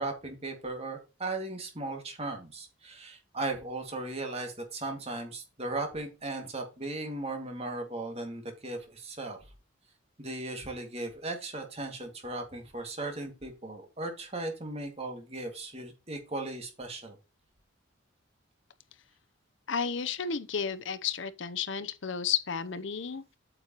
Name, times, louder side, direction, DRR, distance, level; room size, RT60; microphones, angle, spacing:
voice 1, 0.0-9.4 10.2-17.2, right 2 dB, 30° right, 2.2 m, -37 dB
voice 2, 19.7-23.2, left 7 dB, 65° left, 0.8 m, -32 dB
8.6 x 6.7 x 3.0 m
head